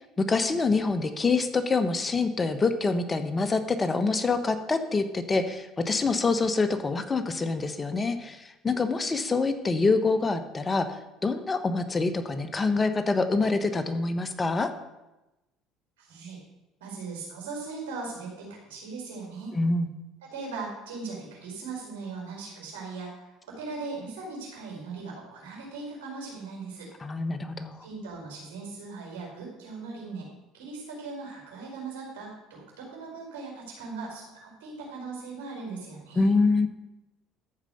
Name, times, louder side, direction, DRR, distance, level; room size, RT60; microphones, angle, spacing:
voice 1, 0.3-11.0 11.2-14.7 19.5-19.9 27.0-27.8 36.2-36.7, left 3 dB, 25° left, 9 dB, 1.2 m, -26 dB
voice 2, 16.0-16.4 16.8-19.5 20.2-26.9 27.8-30.3 30.5-36.3, right 4 dB, 90° right, -2 dB, 4.8 m, -39 dB
13.5 x 5.0 x 7.8 m, 0.99 s
supercardioid pair, 85°, 0 cm